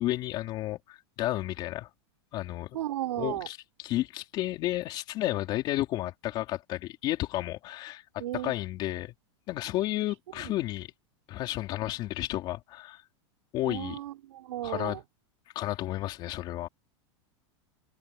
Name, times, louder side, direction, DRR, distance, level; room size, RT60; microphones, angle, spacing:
voice 1, 0.0-1.9 2.3-2.7 3.2-3.6 3.8-8.0 8.4-9.1 9.5-10.9 11.3-13.0 13.5-14.0 14.6-15.0 15.5-16.7, left 15 dB, 30° left, 4.3 m, -32 dB
voice 2, 2.7-3.5 8.2-8.5 10.4-10.6 13.6-15.0, right 13 dB, 80° right, 5.6 m, -34 dB
supercardioid pair, 175°, 15 cm